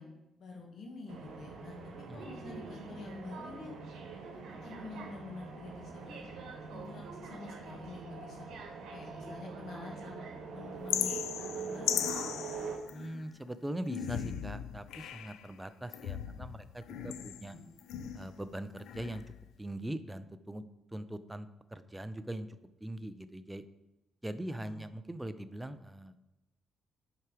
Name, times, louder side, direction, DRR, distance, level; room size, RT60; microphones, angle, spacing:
voice 1, 0.0-3.8 4.3-6.2 6.7-8.5 8.9-12.3 17.5-17.6 24.5-24.8, left 3 dB, 60° left, 0 dB, 2.0 m, -47 dB
sound 1, 1.1-12.8, right 5 dB, 75° right, 1.4 m, -44 dB
sound 2, 10.9-13.3 13.8-15.5 15.9-18.4 18.8-19.5, left 10 dB, 85° left, 0.3 m, -37 dB
voice 2, 12.9-17.6 18.1-19.2 19.6-20.6 20.9-22.5 22.8-23.7 24.2-26.2, right 1 dB, 10° right, 11 dB, 0.5 m, -41 dB
7.6 x 4.8 x 4.8 m, 0.98 s
cardioid pair, 90°, 0 cm